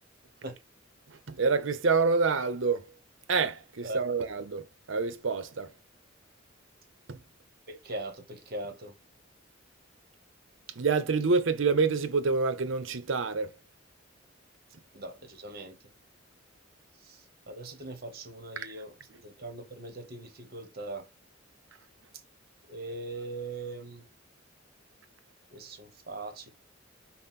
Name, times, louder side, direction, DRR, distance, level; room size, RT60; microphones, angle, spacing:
voice 1, 1.3-2.8 3.3-5.7 7.1-7.2 10.8-13.5, right 4 dB, 70° right, 0.7 m, -27 dB
voice 2, 3.8-4.2 7.7-8.9 14.9-15.8 17.1-17.2 17.5-18.9 19.2-21.0 22.7-24.0 25.5-26.5, right 2 dB, 50° right, 1.0 m, -40 dB
5.6 x 2.0 x 4.1 m
head